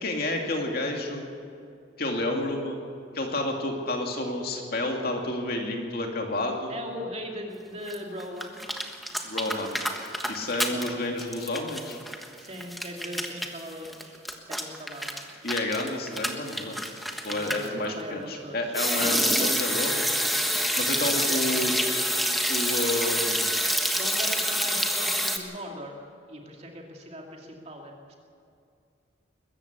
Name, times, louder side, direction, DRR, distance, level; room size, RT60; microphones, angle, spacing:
voice 1, 0.0-1.3 2.0-2.8 3.1-6.7 9.2-9.8 10.3-12.0 15.4-16.8 17.2-20.1 20.8-21.7 22.5-23.6, left 1 dB, 50° left, 2 dB, 2.5 m, -30 dB
voice 2, 6.7-8.6 10.6-11.1 12.4-14.2 14.5-15.4 17.3-19.7 20.2-20.4 20.7-22.2 23.9-26.0 26.3-28.2, equal, 35° right, 1 dB, 2.5 m, -40 dB
sound 1, 7.9-8.0 8.2-10.9 11.2-17.7 18.7-25.4, equal, ahead, 1.3 m, -27 dB
21.5 x 14.5 x 8.2 m, 2.4 s
head